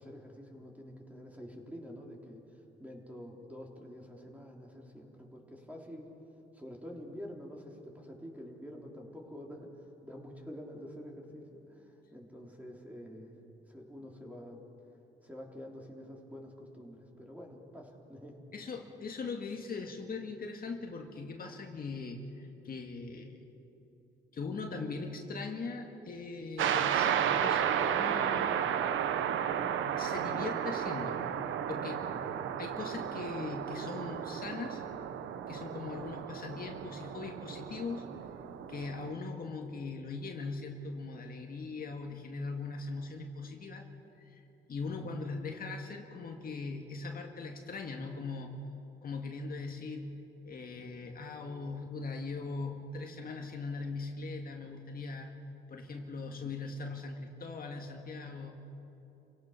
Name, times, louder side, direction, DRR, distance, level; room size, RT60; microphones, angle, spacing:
voice 1, 0.0-6.1 6.5-13.3 13.6-14.6 15.2-18.4 32.1-32.3 44.8-45.1, equal, 5° right, -1 dB, 3.7 m, -48 dB
voice 2, 18.5-23.5 24.3-28.6 29.8-31.2 31.7-32.1 32.6-34.9 35.5-38.0 38.7-43.8 44.2-44.4 44.7-48.5 49.0-55.3 55.7-58.6, left 4 dB, 50° left, 2 dB, 2.0 m, -40 dB
sound 1, 26.6-39.1, right 9 dB, 80° right, 1.1 m, -33 dB
29.0 x 17.5 x 5.8 m, 3.0 s
cardioid pair, 90°, 20 cm